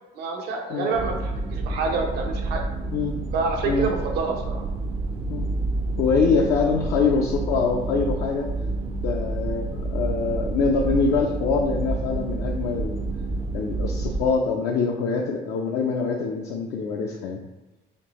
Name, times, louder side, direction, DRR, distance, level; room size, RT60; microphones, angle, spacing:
voice 1, 0.1-2.6 3.3-4.6, right 4 dB, 75° right, 2 dB, 0.7 m, -27 dB
sound 1, 0.9-14.3, right 2 dB, 35° right, 0.4 m, -29 dB
voice 2, 6.0-8.5 9.0-13.0 13.5-17.4, left 5 dB, 70° left, 0 dB, 0.5 m, -24 dB
4.3 x 2.7 x 3.0 m, 1.1 s
cardioid pair, 110°, 17 cm